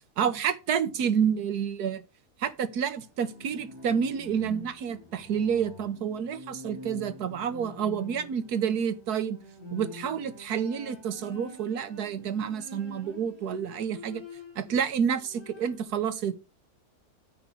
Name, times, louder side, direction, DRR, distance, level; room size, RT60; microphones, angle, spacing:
voice 1, 0.2-2.0 2.4-9.4 9.7-14.2 14.5-16.5, right 7 dB, 85° right, 1.5 m, -29 dB
Bowed string instrument, 3.0-14.8 15.1-15.9, left 2 dB, 15° right, 4.2 m, -46 dB
9.9 x 3.8 x 7.0 m
omnidirectional pair, 1.6 m